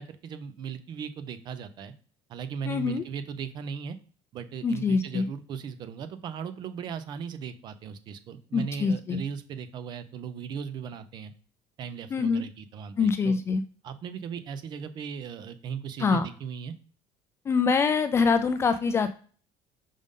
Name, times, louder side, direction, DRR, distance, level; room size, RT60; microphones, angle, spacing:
voice 1, 0.0-1.9 2.3-4.0 4.3-11.3 11.8-13.4 13.8-16.7, right 7 dB, 40° right, 11 dB, 0.5 m, -37 dB
voice 2, 2.7-3.0 4.6-5.3 8.5-9.2 12.1-12.4 13.0-13.6 16.0-16.3 17.5-19.1, left 5 dB, 20° left, 10 dB, 0.3 m, -24 dB
5.3 x 5.0 x 3.6 m, 0.41 s
cardioid pair, 180°, 12 cm